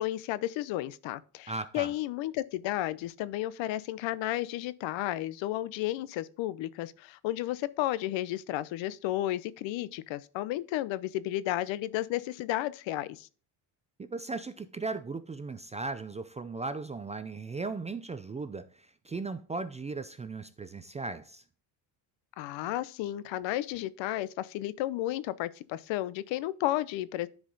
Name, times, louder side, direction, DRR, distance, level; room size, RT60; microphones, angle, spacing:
voice 1, 0.0-13.3 22.4-27.3, left 14 dB, 70° left, 0.7 m, -33 dB
voice 2, 1.5-1.9 14.0-21.4, right 3 dB, 15° right, 0.3 m, -37 dB
10.0 x 4.9 x 3.9 m
cardioid pair, 110°, 47 cm